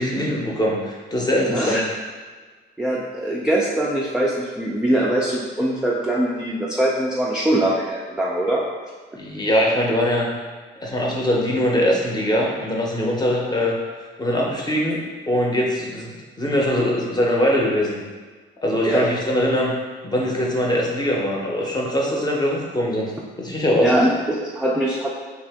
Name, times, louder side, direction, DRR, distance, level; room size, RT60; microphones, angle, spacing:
voice 1, 0.0-1.8 9.2-10.3 10.8-13.8 14.2-18.0 18.6-19.7 20.0-23.1 23.4-23.9, equal, 20° left, -2 dB, 0.7 m, -22 dB
voice 2, 1.5-1.8 2.8-8.7 18.9-19.1 20.1-20.2 23.8-25.1, right 1 dB, 5° right, -4 dB, 0.3 m, -22 dB
2.8 x 2.4 x 3.4 m, 1.4 s
cardioid pair, 90°, 20 cm